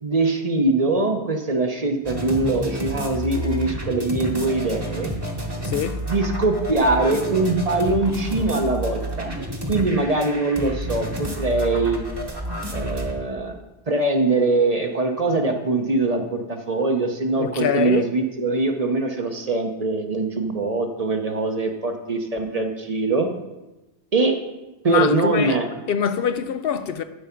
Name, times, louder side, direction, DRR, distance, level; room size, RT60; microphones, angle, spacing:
voice 1, 0.0-5.1 6.1-9.3 9.7-12.0 12.7-13.6 13.9-23.3 24.1-24.3 24.8-25.7, right 2 dB, 40° right, 0.8 m, -22 dB
sound 1, 2.0-13.1, right 1 dB, 25° right, 1.2 m, -30 dB
voice 2, 5.6-6.1 17.4-18.1 24.9-25.6 25.9-27.0, left 8 dB, 70° left, 0.7 m, -24 dB
11.5 x 4.7 x 5.8 m
omnidirectional pair, 1.1 m